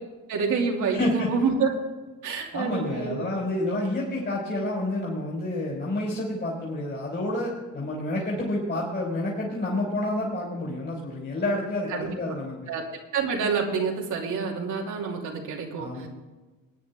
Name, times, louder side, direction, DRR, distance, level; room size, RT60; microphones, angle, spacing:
voice 1, 0.3-1.7 2.2-3.2 11.9-12.1 12.7-12.8 13.1-16.1, right 5 dB, 80° right, 0 dB, 2.9 m, -27 dB
voice 2, 0.9-1.3 2.5-12.7 15.8-16.1, left 1 dB, 35° left, -4 dB, 5.0 m, -29 dB
21.0 x 9.7 x 3.6 m, 1.2 s
cardioid pair, 90°, 30 cm